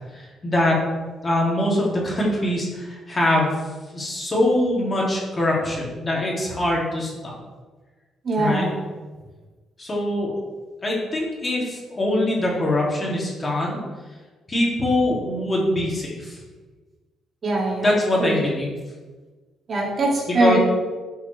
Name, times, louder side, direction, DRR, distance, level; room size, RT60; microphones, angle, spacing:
voice 1, 0.1-0.8 1.2-3.5 3.9-7.1 8.4-8.7 9.8-10.4 10.8-13.8 14.5-16.4 17.8-18.7 20.3-20.6, left 1 dB, 30° left, -3 dB, 2.7 m, -23 dB
voice 2, 8.2-8.7 17.4-17.9 18.2-18.4 19.7-20.6, right 2 dB, 45° right, -3 dB, 2.5 m, -22 dB
10.5 x 5.7 x 3.4 m, 1.3 s
cardioid pair, 90°, 0 cm